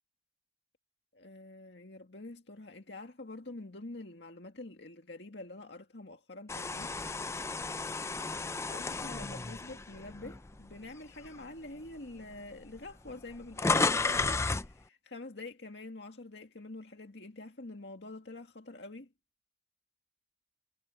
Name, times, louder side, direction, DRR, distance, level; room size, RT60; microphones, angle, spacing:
voice 1, 1.1-6.9 8.7-19.1, left 2 dB, 70° left, 2.0 m, -46 dB
sound 1, 6.5-10.7 11.2-11.4 12.3-12.4 12.6-14.7, left 3 dB, 15° left, 0.4 m, -33 dB
head